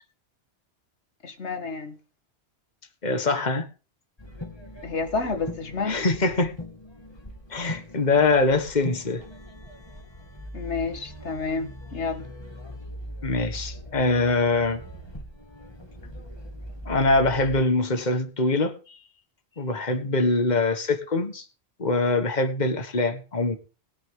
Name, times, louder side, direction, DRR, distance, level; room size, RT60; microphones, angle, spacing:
voice 1, 1.2-2.0 4.8-6.0 10.5-12.3, left 4 dB, 85° left, 2.0 m, -30 dB
voice 2, 3.0-3.7 5.9-6.5 7.5-9.2 13.2-14.8 16.9-19.0 19.6-21.4 21.8-23.6, left 3 dB, 40° left, 1.7 m, -23 dB
sound 1, 4.2-17.6, equal, 25° left, 2.4 m, -41 dB
20.0 x 9.5 x 3.8 m
omnidirectional pair, 1.1 m